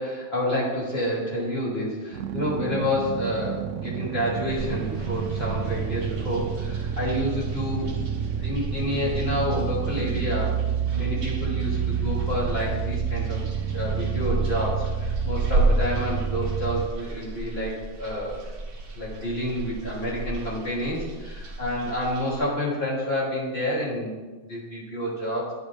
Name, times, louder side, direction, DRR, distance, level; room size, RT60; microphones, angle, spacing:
voice 1, 0.0-7.9 8.4-10.6 10.9-13.4 13.7-18.4 19.0-24.1 24.4-25.5, left 1 dB, 55° left, -6 dB, 3.5 m, -29 dB
sound 1, 2.1-16.9, right 8 dB, 85° right, 0.9 m, -29 dB
sound 2, 4.5-22.4, right 1 dB, 50° right, 1.2 m, -33 dB
11.0 x 10.5 x 3.5 m, 1.3 s
omnidirectional pair, 1.3 m